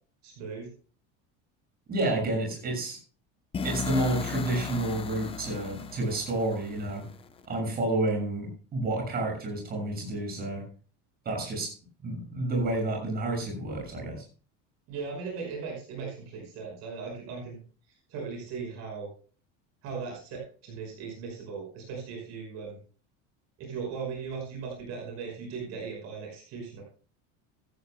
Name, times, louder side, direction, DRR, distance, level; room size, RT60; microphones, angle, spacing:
voice 1, 0.2-0.7 14.9-17.6 17.9-19.1 19.8-22.8 23.6-26.8, right 5 dB, 50° right, 0 dB, 5.5 m, -38 dB
voice 2, 1.9-3.0 3.6-7.0 7.4-10.6 11.2-11.7 12.0-14.2, right 2 dB, 25° right, 1 dB, 6.4 m, -30 dB
sound 1, 3.5-7.5, left 5 dB, 15° left, 0.7 m, -36 dB
15.5 x 14.0 x 2.2 m, 0.39 s
cardioid pair, 175°, 35 cm